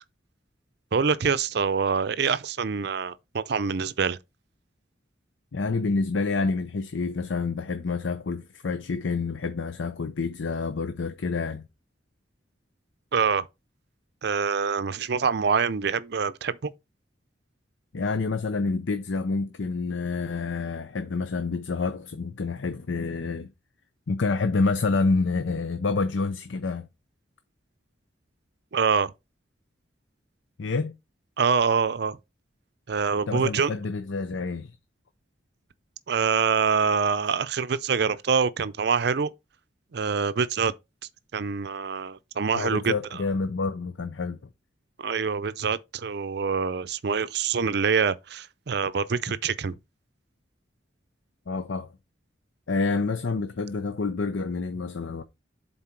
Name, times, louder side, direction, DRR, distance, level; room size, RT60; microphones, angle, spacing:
voice 1, 0.9-4.2 13.1-13.5 14.2-16.7 28.7-29.1 31.4-32.2 32.9-33.7 36.1-39.3 39.9-40.7 41.3-43.2 45.0-49.7, right 5 dB, 60° right, 0.5 m, -25 dB
voice 2, 5.5-11.6 17.9-23.5 24.1-26.9 30.6-31.0 33.3-34.7 42.5-44.4 51.5-51.9 52.7-55.2, left 4 dB, 80° left, 0.6 m, -28 dB
7.5 x 4.0 x 4.4 m
head